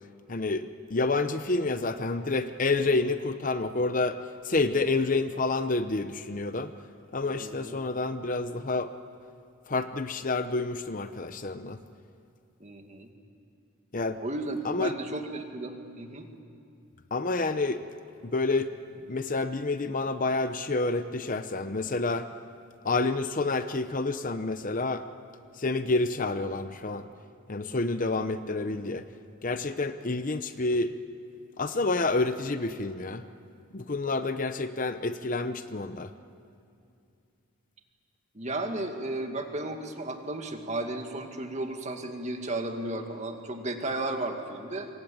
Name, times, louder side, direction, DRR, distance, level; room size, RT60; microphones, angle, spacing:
voice 1, 0.3-4.2 4.4-6.7 7.1-8.9 9.7-11.8 13.9-14.2 14.6-14.9 17.1-17.8 18.2-18.8 19.1-22.3 22.8-25.0 25.6-27.0 27.5-29.0 29.4-30.9 31.6-33.2 33.7-36.1, left 3 dB, 35° left, 10 dB, 0.8 m, -28 dB
voice 2, 7.4-7.7 12.6-13.1 14.2-16.3 38.3-44.9, right 2 dB, 30° right, 4 dB, 2.1 m, -34 dB
26.5 x 23.0 x 8.9 m, 2.5 s
head